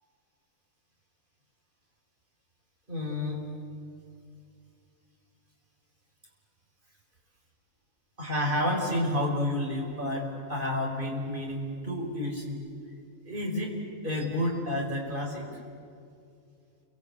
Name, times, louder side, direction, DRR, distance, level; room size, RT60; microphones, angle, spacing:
voice 1, 2.9-3.5 8.2-12.6 13.2-13.7 14.0-15.5, left 1 dB, 40° right, 0 dB, 5.3 m, -30 dB
29.0 x 24.5 x 8.4 m, 2.4 s
omnidirectional pair, 1.4 m